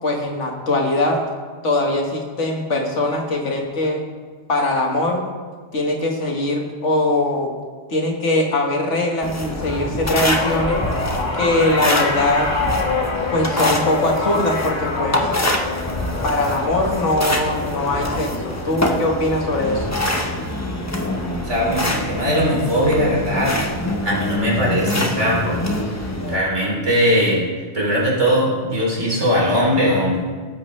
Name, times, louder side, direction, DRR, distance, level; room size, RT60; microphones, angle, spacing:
voice 1, 0.0-1.2 1.6-4.0 4.5-5.3 5.7-7.5 7.9-10.8 11.4-12.5 13.3-15.3 16.2-19.9, left 2 dB, 75° left, 1 dB, 2.0 m, -21 dB
sound 1, 9.2-26.4, left 1 dB, 15° left, 0.9 m, -25 dB
sound 2, 10.2-20.6 21.0-21.4 22.5-22.6, left 3 dB, 40° left, 1.5 m, -27 dB
voice 2, 21.4-23.6 24.0-25.8 26.3-27.4 27.7-30.2, equal, 80° right, -4 dB, 3.6 m, -19 dB
18.5 x 8.5 x 3.3 m, 1.5 s
omnidirectional pair, 1.2 m